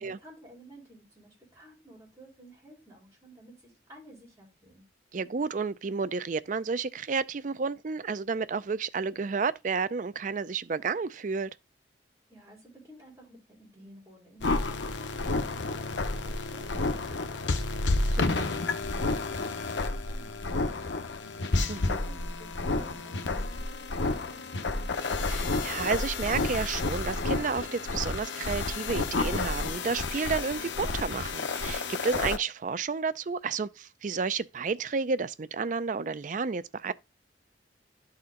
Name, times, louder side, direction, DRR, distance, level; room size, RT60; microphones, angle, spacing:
voice 1, 0.0-4.9 12.3-24.9, right 1 dB, 15° right, 3.9 m, -53 dB
voice 2, 5.1-11.5 18.1-18.5 21.7-22.0 25.3-36.9, right 5 dB, 45° right, 0.4 m, -31 dB
sound 1, 14.4-32.4, left 3 dB, 85° left, 0.8 m, -30 dB
11.5 x 4.3 x 3.7 m
head